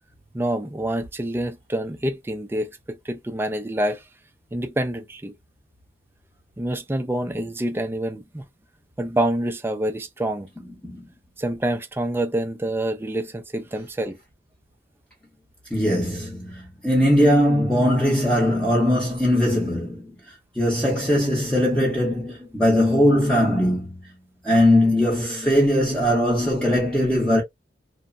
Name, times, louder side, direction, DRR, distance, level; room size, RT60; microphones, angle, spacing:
voice 1, 0.3-4.0 4.5-5.3 6.6-8.4 9.0-10.5 11.4-14.2, right 1 dB, 15° right, 0.4 m, -27 dB
voice 2, 15.7-20.1 20.6-24.0 24.4-27.4, left 1 dB, 5° left, 0.7 m, -20 dB
2.9 x 2.1 x 2.4 m
head